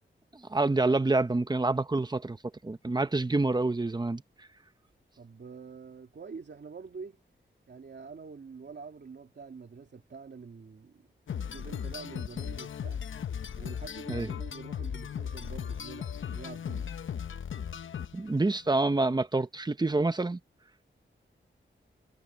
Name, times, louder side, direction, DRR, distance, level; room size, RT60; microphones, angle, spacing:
voice 1, 0.3-2.4 2.6-4.2 14.1-14.3 18.1-20.4, right 2 dB, 20° right, 1.0 m, -27 dB
voice 2, 5.2-7.2 7.7-11.1 11.5-13.0 13.5-17.0, right 5 dB, 60° right, 2.6 m, -46 dB
sound 1, 11.3-18.4, left 8 dB, 80° left, 0.7 m, -37 dB
wide cardioid pair, 115°, 20 cm